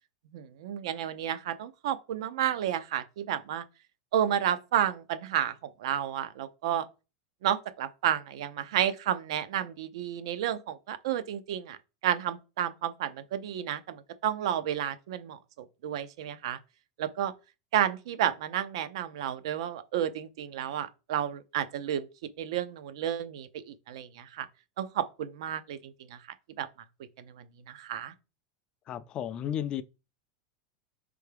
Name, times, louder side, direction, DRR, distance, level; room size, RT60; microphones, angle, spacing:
voice 1, 0.3-3.6 4.1-5.5 5.8-6.9 7.4-11.8 12.0-15.4 15.8-16.6 17.0-17.3 17.7-22.1 22.4-24.5 24.8-25.9 26.6-26.7 27.7-28.1, right 10 dB, 75° right, 0.5 m, -31 dB
voice 2, 28.9-29.8, left 10 dB, 35° left, 0.3 m, -33 dB
4.5 x 3.4 x 3.3 m
supercardioid pair, 130°, 3 cm